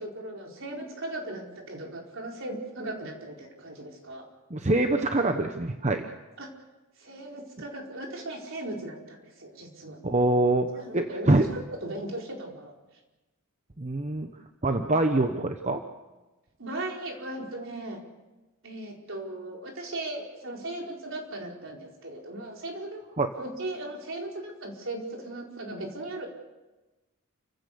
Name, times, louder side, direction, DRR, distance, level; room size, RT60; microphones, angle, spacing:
voice 1, 0.0-4.2 6.4-6.5 7.0-10.0 10.7-12.7 16.6-18.0 18.6-23.0 23.3-26.3, right 1 dB, 60° right, 0 dB, 4.6 m, -37 dB
voice 2, 4.5-6.0 10.0-10.7 10.9-11.5 13.8-14.3 14.6-15.8 23.2-23.3, right 2 dB, 30° right, 6 dB, 1.0 m, -24 dB
29.5 x 16.0 x 7.0 m, 1.1 s
head